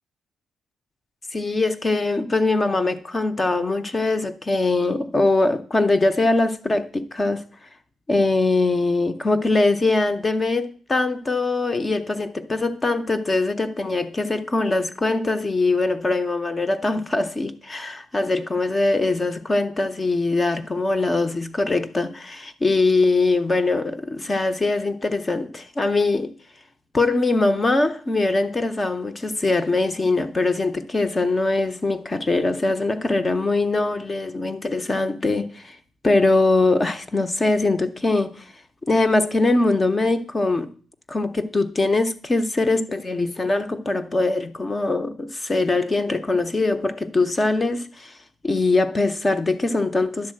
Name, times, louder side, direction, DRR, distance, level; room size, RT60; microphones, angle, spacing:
voice 1, 1.3-7.5 8.1-26.3 26.9-35.8 36.0-38.5 38.8-40.7 41.1-48.2 48.4-50.3, left 2 dB, 20° left, 0.5 m, -22 dB
10.5 x 4.0 x 7.5 m
cardioid pair, 170°, 0 cm